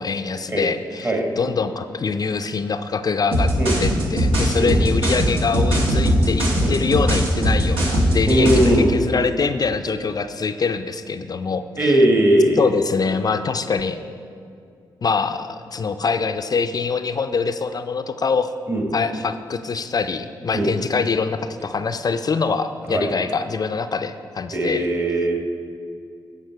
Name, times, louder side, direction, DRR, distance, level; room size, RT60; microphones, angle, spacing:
voice 1, 0.0-3.5 3.8-12.0 12.6-14.0 15.0-18.5 18.9-24.8, left 5 dB, 45° left, 9 dB, 0.4 m, -24 dB
sound 1, 3.3-8.8, equal, 85° right, 1.3 m, -19 dB
voice 2, 8.3-8.9 11.8-12.7 18.7-18.9 20.5-20.7 22.9-23.1 24.5-25.4, right 1 dB, 30° right, 2 dB, 1.4 m, -19 dB
9.1 x 5.5 x 4.6 m, 2.4 s
supercardioid pair, 45°, 9 cm